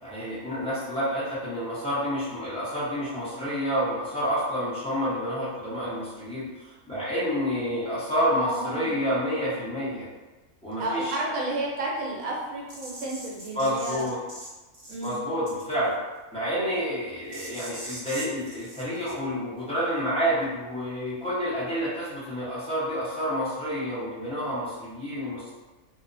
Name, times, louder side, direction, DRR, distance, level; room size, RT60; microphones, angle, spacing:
voice 1, 0.0-10.1 10.6-11.2 13.5-14.2 15.0-15.9 16.3-25.5, equal, 5° left, -11 dB, 0.6 m, -29 dB
voice 2, 8.2-9.0 10.8-14.1 14.9-15.2, right 2 dB, 85° right, -4 dB, 1.1 m, -31 dB
sound 1, 12.7-14.5 14.7-15.1 15.5-15.8 17.3-19.1, right 1 dB, 45° right, 0.7 m, -41 dB
2.8 x 2.1 x 2.5 m, 1.2 s
omnidirectional pair, 1.4 m